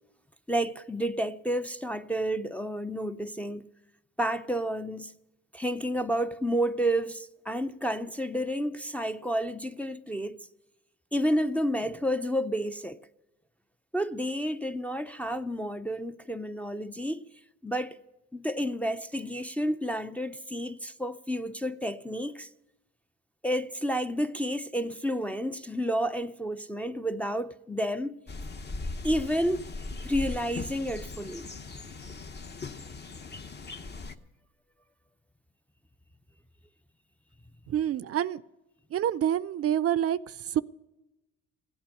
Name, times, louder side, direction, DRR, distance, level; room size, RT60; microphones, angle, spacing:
voice 1, 0.5-3.7 4.2-5.1 5.5-10.4 11.1-13.0 13.9-17.2 17.6-18.0 18.3-22.5 23.4-28.2 29.0-29.7 30.0-31.5, equal, 5° left, 0.5 m, -30 dB
sound 1, 28.3-34.2, left 3 dB, 35° left, 0.9 m, -39 dB
voice 2, 37.7-38.4 38.9-40.6, right 10 dB, 50° right, 0.4 m, -27 dB
16.0 x 8.7 x 9.7 m
cardioid pair, 90°, 30 cm